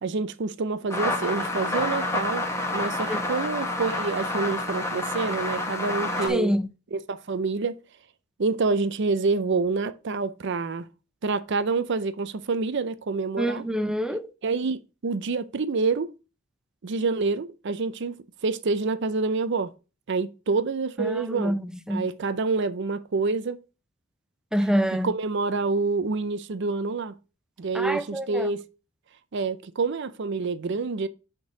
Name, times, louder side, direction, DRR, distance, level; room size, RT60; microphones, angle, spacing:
voice 1, 0.0-2.4 2.7-6.5 6.9-7.8 8.4-10.9 11.2-13.6 14.4-16.1 16.8-18.1 18.4-19.7 20.1-21.6 21.9-23.6 25.0-27.1 27.6-28.6 29.3-31.1, right 4 dB, 60° right, 0.5 m, -27 dB
sound 1, 0.9-6.3, left 2 dB, 15° left, 1.4 m, -28 dB
voice 2, 6.3-6.7 13.4-14.3 21.0-22.0 24.5-25.1 27.7-28.5, equal, 5° right, 0.5 m, -26 dB
6.3 x 3.8 x 5.9 m
head